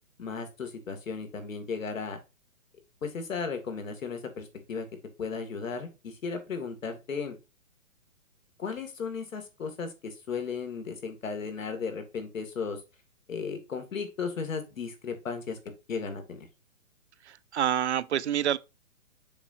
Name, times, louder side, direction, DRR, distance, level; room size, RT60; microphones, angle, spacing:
voice 1, 0.2-2.2 3.0-4.9 5.2-7.4 8.6-12.8 13.3-15.6 15.9-16.5, left 5 dB, 70° left, 2.4 m, -35 dB
voice 2, 17.2-18.6, right 10 dB, 60° right, 0.5 m, -27 dB
7.0 x 5.5 x 2.7 m
hypercardioid pair, 160°, 40 cm